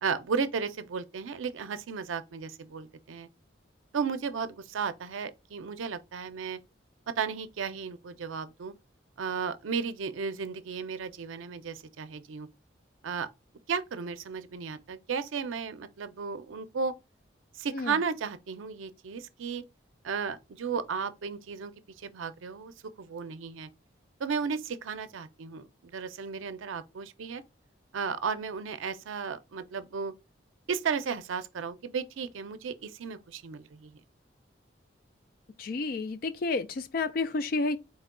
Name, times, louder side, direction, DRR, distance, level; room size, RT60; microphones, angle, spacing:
voice 1, 0.0-3.3 3.9-6.6 7.2-8.7 9.2-12.5 13.0-13.3 13.7-16.9 17.5-19.6 20.0-21.7 22.0-22.7 23.0-23.7 24.2-25.7 25.9-27.4 27.9-30.1 30.7-34.0, right 5 dB, 90° right, 0.5 m, -34 dB
voice 2, 35.6-37.8, left 3 dB, 50° left, 0.4 m, -30 dB
4.1 x 2.2 x 3.6 m
head